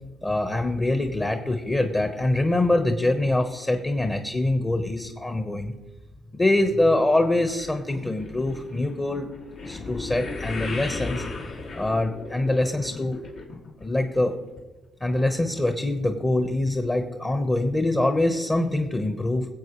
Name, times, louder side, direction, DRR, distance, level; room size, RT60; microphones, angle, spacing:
voice 1, 0.2-5.7 6.3-9.3 9.7-11.2 11.8-13.2 13.8-14.3 15.0-19.5, left 2 dB, 20° left, 6 dB, 1.1 m, -24 dB
sound 1, 7.5-13.9 14.1-14.6 15.2-15.3 15.6-15.7, left 3 dB, 70° left, 2.6 m, -36 dB
22.0 x 7.9 x 3.2 m, 1.2 s
supercardioid pair, 75°, 0 cm